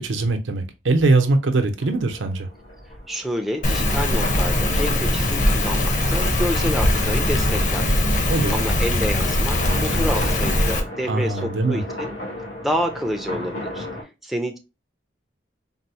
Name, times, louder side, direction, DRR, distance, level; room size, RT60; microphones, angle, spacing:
voice 1, 0.0-2.5 8.3-8.6 11.1-11.8, right 3 dB, 90° right, 0.7 m, -21 dB
sound 1, 1.8-14.0, left 1 dB, 80° left, 1.5 m, -36 dB
voice 2, 3.1-12.2 12.6-13.9 14.2-14.6, equal, ahead, 0.3 m, -28 dB
Rain, 3.6-10.8, left 1 dB, 40° left, 0.7 m, -21 dB
3.9 x 2.0 x 2.7 m
head